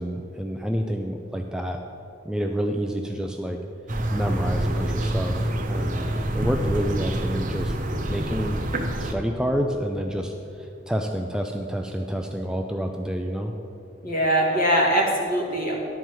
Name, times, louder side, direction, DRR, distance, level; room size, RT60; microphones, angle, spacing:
voice 1, 0.0-1.8 2.2-3.6 4.1-6.1 6.3-7.8 8.1-8.6 9.0-13.5, equal, 5° right, 3 dB, 0.4 m, -28 dB
sound 1, 3.9-9.1, right 1 dB, 45° right, 0.8 m, -27 dB
voice 2, 14.0-15.7, equal, 50° left, -2 dB, 2.0 m, -22 dB
11.5 x 4.6 x 7.4 m, 2.6 s
head